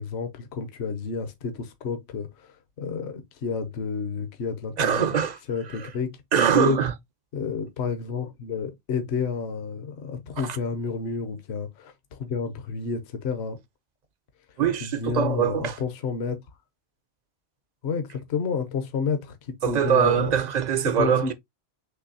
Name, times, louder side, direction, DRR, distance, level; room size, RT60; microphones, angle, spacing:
voice 1, 0.0-5.1 5.5-6.1 6.4-6.8 7.3-13.6 14.8-16.4 17.8-20.3 20.8-21.3, left 5 dB, 70° left, 1.0 m, -30 dB
voice 2, 4.8-5.4 5.7-5.9 6.3-6.9 10.4-10.6 14.6-15.8 19.6-21.3, right 8 dB, 50° right, 0.5 m, -23 dB
6.0 x 3.1 x 2.6 m
omnidirectional pair, 1.2 m